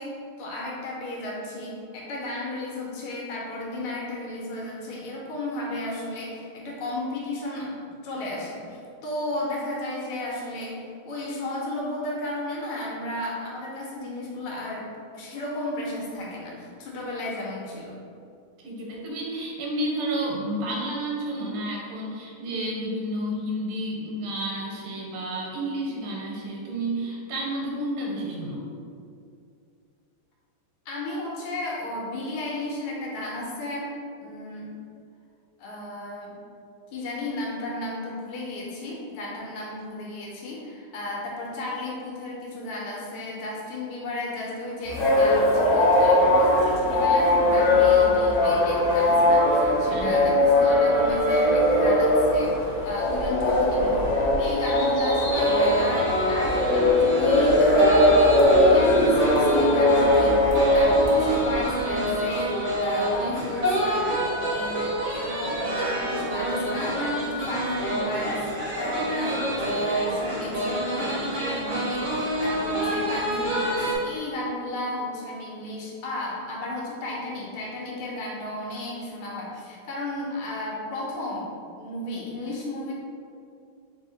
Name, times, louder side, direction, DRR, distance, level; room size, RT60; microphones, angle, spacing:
voice 1, 0.0-18.0 30.9-33.9 34.2-34.7 35.6-36.4 36.9-64.2 64.5-81.5 81.8-82.9, left 1 dB, 90° left, -4 dB, 1.6 m, -34 dB
voice 2, 18.6-28.6 49.9-50.2, right 1 dB, 90° right, -2 dB, 1.7 m, -31 dB
sound 1, 44.8-61.9, left 1 dB, 55° left, 0.9 m, -20 dB
sound 2, 55.3-74.0, right 1 dB, 55° right, 0.8 m, -27 dB
3.5 x 2.7 x 3.8 m, 2.4 s
omnidirectional pair, 2.4 m